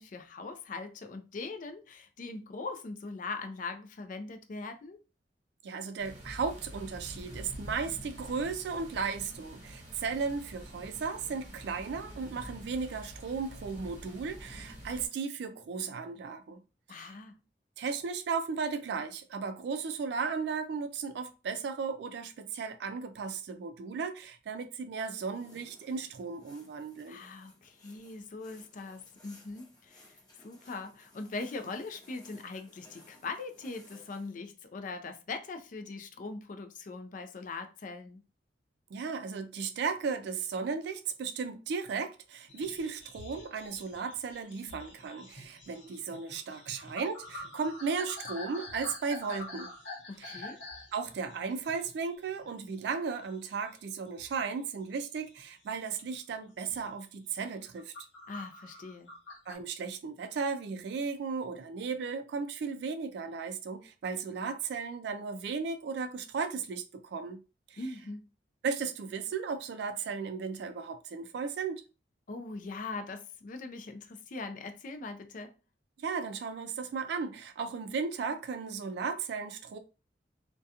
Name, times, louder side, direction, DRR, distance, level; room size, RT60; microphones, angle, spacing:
voice 1, 0.0-5.0 16.9-17.4 27.1-38.2 50.1-50.6 58.3-59.2 67.8-68.2 72.3-75.5, left 3 dB, 45° left, 0.4 m, -41 dB
voice 2, 5.6-16.6 16.9-17.1 17.8-27.2 38.9-49.7 50.2-50.5 50.9-57.9 59.5-67.4 67.7-67.8 68.6-71.8 76.0-79.8, right 5 dB, 60° right, 0.3 m, -35 dB
sound 1, 6.0-15.1, equal, 40° right, 1.0 m, -47 dB
sound 2, 25.3-34.3, left 1 dB, 20° left, 0.7 m, -59 dB
sound 3, 42.5-52.9 53.2-53.9 54.2-55.7 56.1-56.3 56.7-56.9 57.4-59.5, left 2 dB, 85° left, 0.9 m, -47 dB
2.3 x 2.2 x 2.7 m
head